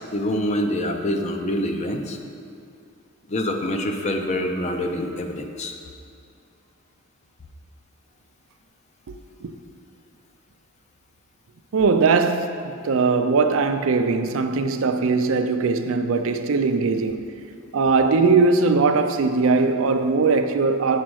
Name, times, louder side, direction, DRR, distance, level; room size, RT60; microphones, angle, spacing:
voice 1, 0.1-2.2 3.3-5.7, left 1 dB, 30° left, 0.5 m, -25 dB
voice 2, 11.7-17.3 17.7-21.0, right 4 dB, 60° right, 0.4 m, -20 dB
7.3 x 5.0 x 6.2 m
head